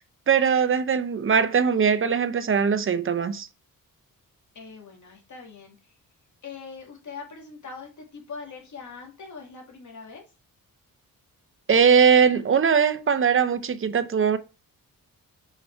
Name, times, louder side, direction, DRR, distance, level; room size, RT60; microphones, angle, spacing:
voice 1, 0.3-3.5 11.7-14.4, right 6 dB, 35° right, 0.6 m, -20 dB
voice 2, 4.5-6.0 6.4-10.2, left 5 dB, 55° left, 2.3 m, -42 dB
6.5 x 5.0 x 4.6 m
wide cardioid pair, 165°, 36 cm